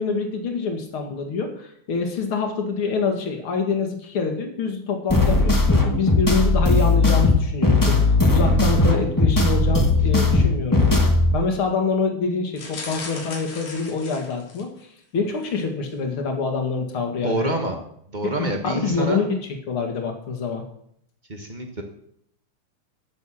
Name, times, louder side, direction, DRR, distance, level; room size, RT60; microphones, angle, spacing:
voice 1, 0.0-11.0 11.3-14.7 15.1-17.5 18.2-18.4 18.6-19.4 19.7-20.6, left 4 dB, 50° left, 3 dB, 2.7 m, -26 dB
sound 1, 5.1-11.3, left 3 dB, 25° left, 0.4 m, -18 dB
sound 2, 12.5-14.8 15.3-15.6 15.9-16.0, left 3 dB, 85° left, 4.7 m, -37 dB
voice 2, 17.2-17.8 18.1-19.2 21.3-21.8, right 2 dB, 55° right, 3 dB, 0.5 m, -27 dB
16.5 x 6.9 x 6.5 m, 0.70 s
omnidirectional pair, 3.4 m